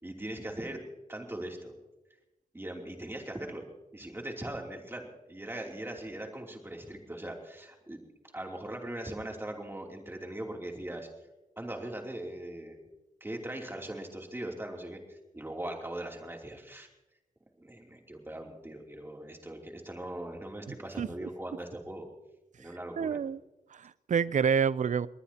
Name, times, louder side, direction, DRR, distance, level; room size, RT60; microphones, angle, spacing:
voice 1, 0.0-0.8 1.1-1.7 2.5-3.6 3.9-8.0 8.3-11.1 11.6-12.8 13.2-16.9 17.6-22.1 22.6-23.2, right 1 dB, 15° right, 1 dB, 2.9 m, -40 dB
voice 2, 21.0-21.3 23.0-23.4 23.7-25.1, right 7 dB, 55° right, 18 dB, 0.5 m, -28 dB
22.5 x 19.5 x 2.9 m, 1.0 s
wide cardioid pair, 115°, 15 cm